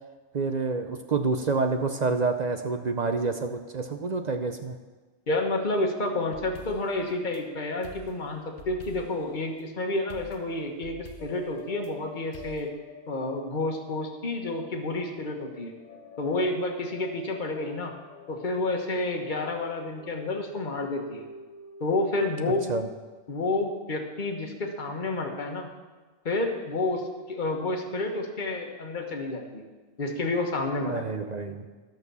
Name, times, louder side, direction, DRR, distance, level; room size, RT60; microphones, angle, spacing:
voice 1, 0.3-4.8 22.7-22.9 30.9-31.7, right 4 dB, 45° right, 6 dB, 0.6 m, -28 dB
voice 2, 5.3-12.7 13.1-15.7 16.2-17.9 18.3-21.2 21.8-22.7 23.3-25.7 26.2-29.6 30.0-31.0, left 2 dB, 40° left, 2 dB, 1.4 m, -30 dB
sound 1, 6.2-7.4 7.8-9.3 10.1-11.9 12.3-12.7, left 4 dB, 60° left, 1.2 m, -48 dB
sound 2, 11.2-23.0, left 3 dB, 80° left, 1.2 m, -48 dB
11.5 x 6.5 x 6.8 m, 1.3 s
omnidirectional pair, 1.3 m